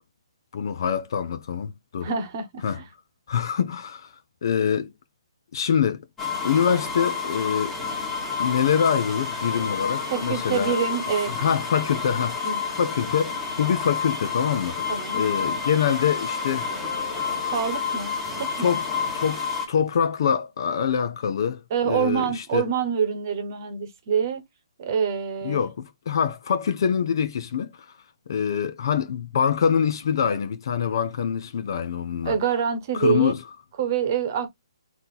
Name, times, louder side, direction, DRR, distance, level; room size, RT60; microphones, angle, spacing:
voice 1, 0.5-2.1 2.6-2.8 3.3-4.1 4.4-4.9 5.5-6.0 6.4-7.8 8.4-10.8 11.3-12.5 12.8-16.7 18.6-18.8 19.1-19.4 19.7-22.7 25.4-27.9 28.3-32.4 32.9-33.4, left 7 dB, 50° left, 0.6 m, -25 dB
voice 2, 2.0-2.8 10.1-11.3 12.4-12.6 14.9-15.2 17.5-18.8 21.7-24.4 24.8-25.7 32.2-33.4 33.8-34.5, right 7 dB, 35° right, 1.1 m, -26 dB
sound 1, 6.2-19.7, left 5 dB, 5° left, 1.4 m, -29 dB
4.3 x 2.8 x 3.8 m
hypercardioid pair, 165°, 3 cm